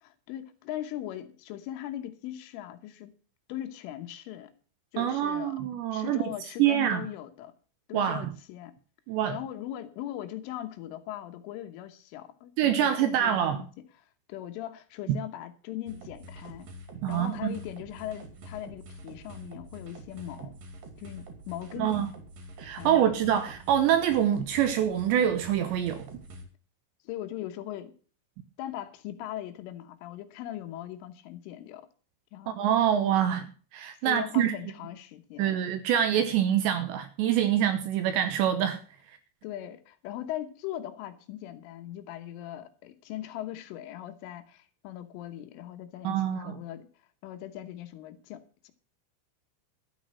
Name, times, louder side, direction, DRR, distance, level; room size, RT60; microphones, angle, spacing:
voice 1, 0.0-3.1 3.5-4.5 4.9-5.6 5.9-7.5 7.9-8.7 9.3-13.7 14.3-16.7 17.1-20.5 21.0-22.1 22.8-23.2 27.1-27.9 28.6-31.9 32.3-32.6 34.0-35.6 39.4-46.9 47.2-48.7, left 12 dB, 75° left, 3.5 m, -39 dB
voice 2, 5.0-6.2 6.6-7.0 7.9-8.3 9.1-9.4 12.6-13.6 17.0-17.5 21.8-22.1 22.6-26.1 32.5-33.5 33.7-34.5 35.4-38.8 46.0-46.6, right 10 dB, 80° right, 2.7 m, -25 dB
sound 1, 15.9-26.4, right 1 dB, 50° right, 3.4 m, -46 dB
12.5 x 8.6 x 6.2 m
omnidirectional pair, 5.9 m